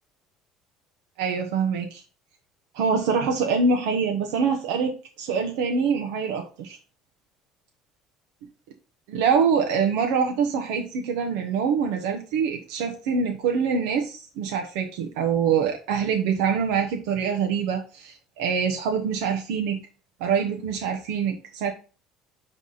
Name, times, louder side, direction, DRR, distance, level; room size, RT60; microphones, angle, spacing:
voice 1, 1.2-2.0 2.7-4.9 5.2-6.8 9.1-19.8 20.2-21.7, right 6 dB, 85° right, 3 dB, 1.1 m, -25 dB
9.7 x 3.5 x 4.1 m, 0.35 s
cardioid pair, 135°, 0 cm